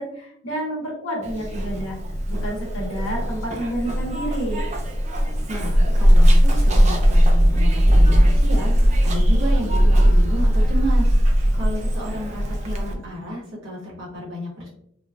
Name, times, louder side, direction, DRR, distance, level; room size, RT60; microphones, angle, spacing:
voice 1, 0.0-2.0 2.3-4.6, right 1 dB, 75° left, -1 dB, 0.9 m, -29 dB
Zipper (clothing), 1.2-12.9, equal, 35° right, 0.4 m, -18 dB
voice 2, 5.5-11.1 11.5-14.8, equal, 65° right, -4 dB, 1.2 m, -32 dB
3.1 x 2.1 x 2.3 m, 0.72 s
head